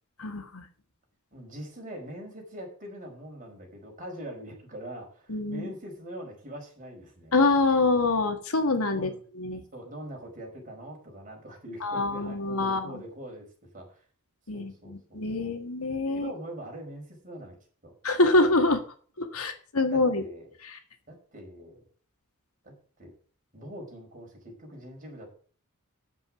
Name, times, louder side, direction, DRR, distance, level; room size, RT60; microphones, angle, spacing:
voice 1, 0.2-0.6 5.3-5.7 7.3-9.6 11.8-13.0 14.5-16.3 18.0-18.8 19.2-20.2 20.6-20.8, left 2 dB, 80° left, 7 dB, 1.8 m, -25 dB
voice 2, 1.3-7.3 8.9-9.2 9.7-13.5 13.7-14.0 14.5-15.6 16.1-17.6 17.8-17.9 19.9-20.5 21.1-21.9 22.6-22.7 23.0-23.1 23.5-25.3, right 1 dB, 40° right, 1 dB, 5.0 m, -43 dB
9.6 x 7.5 x 6.0 m, 0.43 s
head